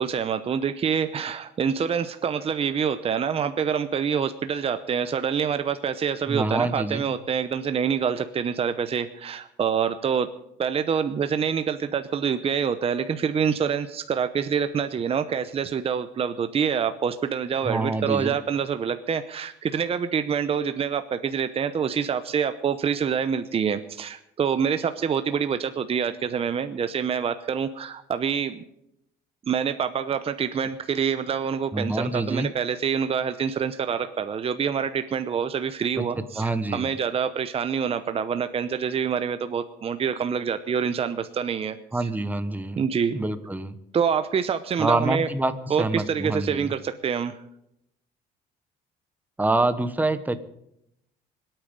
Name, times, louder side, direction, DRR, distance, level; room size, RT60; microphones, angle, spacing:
voice 1, 0.0-10.3 10.6-28.6 29.5-41.8 42.8-43.2 43.9-45.3 45.7-47.4, right 7 dB, 35° right, 10 dB, 0.8 m, -26 dB
voice 2, 6.3-7.1 17.6-18.3 31.7-32.5 36.0-36.9 41.9-42.8 43.1-43.8 44.8-46.7 49.4-50.4, right 2 dB, 10° right, 11 dB, 1.2 m, -26 dB
25.0 x 9.0 x 5.4 m, 0.78 s
cardioid pair, 110°, 17 cm